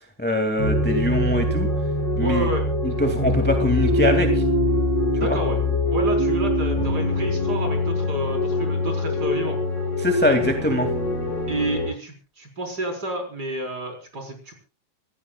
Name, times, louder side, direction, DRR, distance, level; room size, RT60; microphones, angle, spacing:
voice 1, 0.2-1.7 2.2-2.5 2.8-4.4 5.1-5.4 10.0-10.9, left 1 dB, 5° left, 4 dB, 1.4 m, -23 dB
sound 1, 0.6-11.9, left 1 dB, 45° left, 7.2 m, -23 dB
voice 2, 2.2-2.6 5.2-5.6 5.9-9.5 11.5-14.5, right 1 dB, 30° right, 2 dB, 4.7 m, -29 dB
26.5 x 15.5 x 2.3 m, 0.33 s
omnidirectional pair, 3.8 m